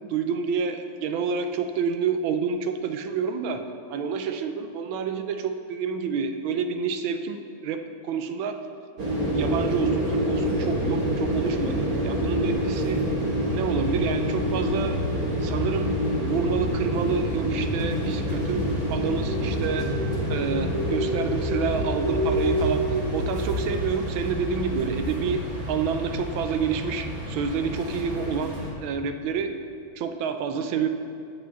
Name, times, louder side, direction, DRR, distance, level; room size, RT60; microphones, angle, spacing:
voice 1, 0.1-3.6 3.9-8.6 9.3-13.0 13.5-15.0 15.4-16.0 16.2-19.9 20.3-29.6 29.9-30.9, right 6 dB, 75° right, 7 dB, 1.4 m, -28 dB
sound 1, 9.0-28.7, equal, 45° right, 1.9 m, -27 dB
8.4 x 5.6 x 8.0 m, 2.4 s
omnidirectional pair, 2.3 m